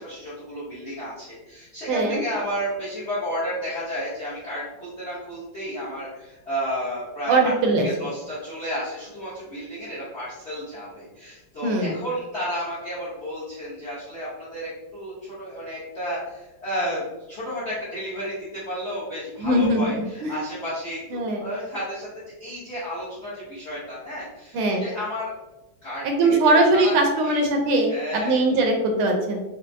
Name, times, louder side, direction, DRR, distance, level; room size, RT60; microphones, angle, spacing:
voice 1, 0.0-7.5 7.8-25.3 25.8-26.1 26.4-26.9 27.2-27.4 27.9-28.4, equal, 50° left, -9 dB, 0.8 m, -32 dB
voice 2, 1.9-2.2 7.3-7.9 11.6-11.9 19.4-19.8 20.2-20.3 21.1-21.4 24.5-24.9 26.0-29.4, right 2 dB, 80° right, 2 dB, 1.4 m, -21 dB
4.3 x 2.0 x 2.6 m, 1.1 s
omnidirectional pair, 2.4 m